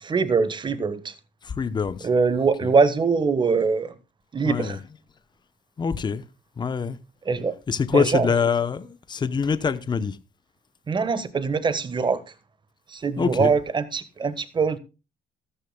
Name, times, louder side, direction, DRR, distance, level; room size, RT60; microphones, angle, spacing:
voice 1, 0.0-1.1 2.0-3.9 4.3-4.8 7.2-7.5 7.9-8.3 10.9-12.2 12.9-14.8, right 5 dB, 25° right, 1.3 m, -23 dB
voice 2, 1.4-2.1 4.4-4.8 5.8-6.2 6.6-7.0 7.7-10.2 13.2-13.5, left 6 dB, 25° left, 0.8 m, -24 dB
14.0 x 13.0 x 2.2 m
cardioid pair, 110°, 17 cm